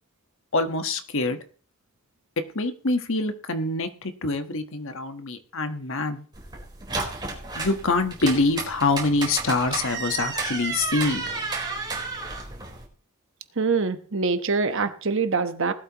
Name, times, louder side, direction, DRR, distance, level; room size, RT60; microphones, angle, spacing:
voice 1, 0.5-1.4 2.5-6.2 7.5-11.3 11.7-11.8, left 3 dB, 60° left, 7 dB, 1.4 m, -25 dB
sound 1, 6.3-12.8, right 3 dB, 20° right, 4.2 m, -32 dB
voice 2, 13.6-15.7, right 4 dB, 60° right, 9 dB, 1.2 m, -24 dB
19.0 x 12.5 x 3.0 m, 0.40 s
head